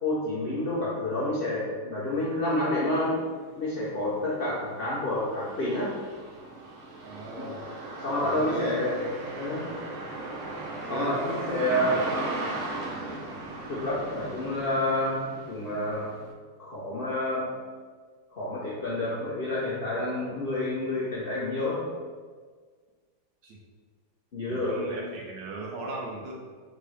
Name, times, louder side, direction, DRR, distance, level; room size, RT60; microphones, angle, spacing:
voice 1, 0.0-3.2 3.6-6.0 7.3-7.5 8.0-9.0 9.3-9.7 10.9-12.0 13.7-16.1 16.6-17.5 18.3-21.8 24.3-24.8, left 1 dB, 80° left, -7 dB, 0.5 m, -29 dB
sound 1, 2.9-3.0 3.4-16.3, right 2 dB, 90° right, 1.6 m, -38 dB
voice 2, 7.0-7.7 8.2-8.8 10.9-11.2 11.5-12.5 23.4-23.6 24.5-26.3, right 2 dB, 70° right, -1 dB, 1.2 m, -37 dB
3.8 x 3.7 x 3.2 m, 1.5 s
omnidirectional pair, 2.2 m